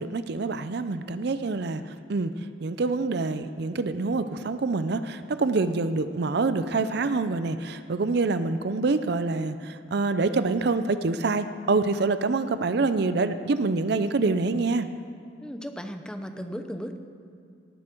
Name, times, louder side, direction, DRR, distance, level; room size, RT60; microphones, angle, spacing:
voice 1, 0.0-2.3 2.6-14.9, right 3 dB, 60° right, 12 dB, 0.5 m, -26 dB
voice 2, 15.4-17.0, equal, 5° left, 7 dB, 0.6 m, -36 dB
18.0 x 9.7 x 4.5 m, 2.4 s
head